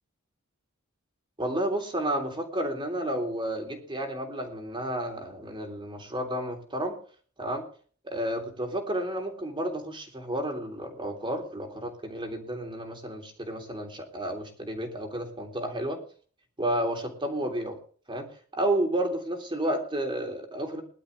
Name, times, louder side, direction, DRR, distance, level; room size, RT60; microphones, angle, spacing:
voice 1, 1.4-7.0 7.4-7.6 8.0-16.0 16.6-17.8 18.1-18.3 18.5-20.8, right 1 dB, 25° right, 3 dB, 3.4 m, -31 dB
21.0 x 12.0 x 3.4 m, 0.43 s
head